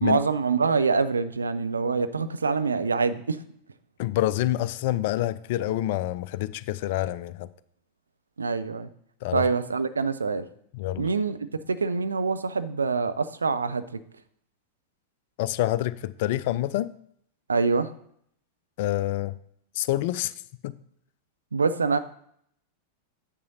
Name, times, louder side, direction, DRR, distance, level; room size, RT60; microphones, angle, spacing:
voice 1, 0.0-3.4 8.4-8.9 9.3-10.5 11.0-11.4 11.7-14.0 17.5-17.9 21.5-22.0, right 4 dB, 75° right, 11 dB, 0.5 m, -25 dB
voice 2, 4.0-7.5 9.2-9.4 10.7-11.1 15.4-16.9 18.8-19.4 19.7-20.3 20.6-20.7, left 14 dB, 50° left, 17 dB, 0.4 m, -27 dB
9.4 x 7.5 x 2.7 m, 0.69 s
figure-of-eight pair, 90°, 0 cm